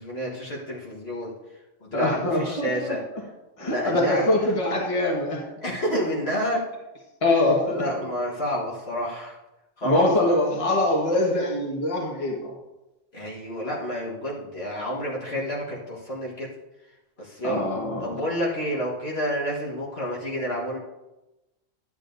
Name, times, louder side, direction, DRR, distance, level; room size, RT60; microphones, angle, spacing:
voice 1, 0.0-1.3 1.8-3.0 3.6-4.5 5.6-6.6 7.7-9.4 9.8-10.1 13.1-16.5 17.2-17.7 18.0-20.8, equal, 50° left, -4 dB, 1.6 m, -29 dB
voice 2, 1.9-3.0 3.6-5.5 7.2-7.8 9.8-12.5 17.4-18.2, left 1 dB, 25° left, -1 dB, 1.4 m, -23 dB
11.5 x 8.5 x 2.6 m, 1.0 s
omnidirectional pair, 1.4 m